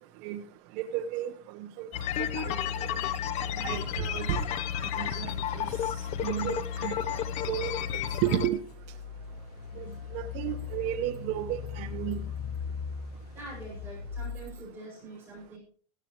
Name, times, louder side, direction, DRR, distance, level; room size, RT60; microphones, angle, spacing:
voice 1, 0.8-1.9 2.2-2.9 3.6-4.4 4.8-5.7 6.2-7.7 8.2-8.6 9.8-12.2, right 12 dB, 40° right, 7 dB, 0.9 m, -33 dB
sound 1, 1.9-8.5, left 9 dB, 35° left, 0.9 m, -32 dB
Engine, 8.6-14.6, left 7 dB, 85° left, 2.2 m, -39 dB
voice 2, 13.3-15.6, right 2 dB, 10° right, -5 dB, 8.0 m, -44 dB
16.5 x 13.5 x 3.2 m, 0.42 s
supercardioid pair, 155°, 19 cm